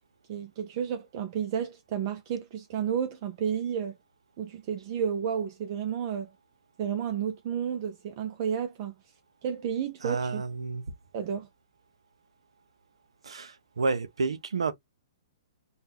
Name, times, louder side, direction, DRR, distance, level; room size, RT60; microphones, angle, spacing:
voice 1, 0.3-3.9 4.4-6.3 6.8-8.9 9.4-10.4 11.1-11.5, right 8 dB, 45° right, 0.5 m, -31 dB
voice 2, 10.0-10.9 13.2-14.7, right 4 dB, 85° right, 0.6 m, -30 dB
3.6 x 2.3 x 2.8 m
hypercardioid pair, 130°, 3 cm